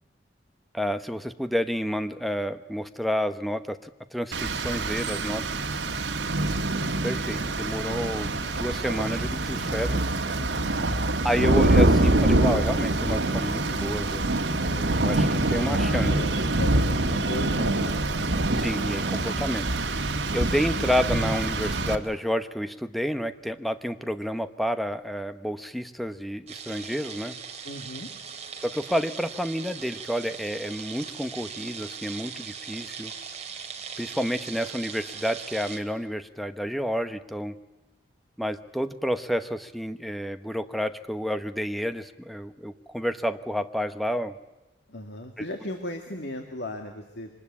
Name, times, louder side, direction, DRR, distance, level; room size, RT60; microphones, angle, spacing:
voice 1, 0.7-5.5 7.0-10.0 11.2-14.4 14.7-16.1 18.6-19.7 20.3-27.4 28.6-33.1 34.0-37.6 38.4-44.4 45.4-45.5, equal, ahead, 10 dB, 1.0 m, -30 dB
Rain, 4.3-22.0, right 2 dB, 90° right, 1.7 m, -25 dB
voice 2, 10.4-10.8 15.7-18.2 27.6-28.1 44.9-47.3, left 1 dB, 75° left, 4 dB, 2.1 m, -37 dB
sound 1, 26.5-35.8, right 6 dB, 40° right, 2.7 m, -40 dB
25.0 x 20.0 x 8.6 m, 1.0 s
head